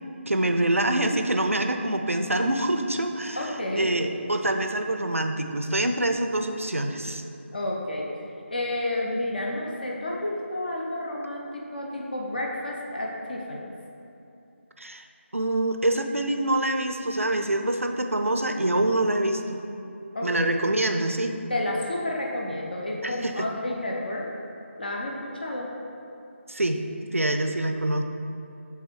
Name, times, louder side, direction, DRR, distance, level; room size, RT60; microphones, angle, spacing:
voice 1, 0.3-3.4 3.8-7.2 14.8-15.0 15.3-19.6 20.2-21.4 23.0-23.5 26.5-26.8 27.1-28.0, right 1 dB, 80° right, 5 dB, 0.6 m, -25 dB
voice 2, 3.3-3.9 7.5-8.1 8.5-13.8 20.1-20.5 21.5-24.3 24.8-25.7, left 1 dB, 45° left, -2 dB, 0.7 m, -30 dB
7.2 x 3.6 x 4.5 m, 2.8 s
figure-of-eight pair, 160°, 7 cm